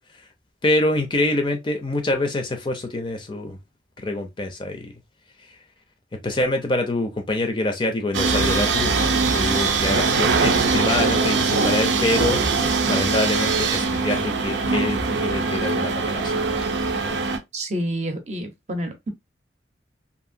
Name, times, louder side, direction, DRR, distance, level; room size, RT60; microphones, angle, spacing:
voice 1, 0.6-3.6 4.0-4.9 6.2-12.4 12.9-16.7, left 2 dB, 25° left, 0.5 m, -25 dB
sound 1, 8.1-17.4, right 4 dB, 85° right, 0.6 m, -22 dB
voice 2, 17.5-19.1, equal, 40° right, 0.7 m, -28 dB
2.8 x 2.6 x 2.5 m
head